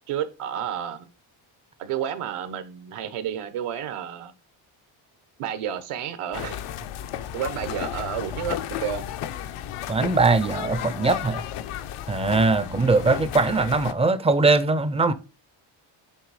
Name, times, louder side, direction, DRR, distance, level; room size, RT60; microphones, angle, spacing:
voice 1, 0.1-1.1 1.8-4.3 5.4-6.6 7.3-9.0 12.6-12.8, right 9 dB, 85° right, 1.1 m, -31 dB
sound 1, 6.3-13.9, left 11 dB, 85° left, 0.8 m, -33 dB
voice 2, 9.9-11.4 12.1-15.1, right 3 dB, 15° right, 0.3 m, -21 dB
8.2 x 3.4 x 4.8 m
cardioid pair, 140°, 50 cm